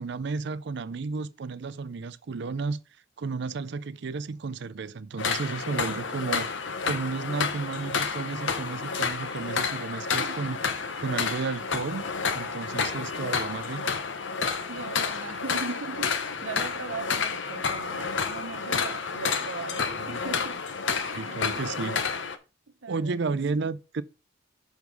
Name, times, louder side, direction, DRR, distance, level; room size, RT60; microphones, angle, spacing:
voice 1, 0.0-2.8 3.2-10.6 11.0-12.0 12.3-14.0 19.9-20.2 21.1-22.2 22.9-24.0, right 4 dB, 60° right, 0.5 m, -33 dB
sound 1, 5.2-22.4, left 5 dB, 65° left, 0.9 m, -30 dB
voice 2, 10.2-10.6 14.7-20.6 21.0-22.0 22.7-23.4, right 4 dB, 80° right, 0.8 m, -39 dB
5.4 x 4.6 x 6.2 m
head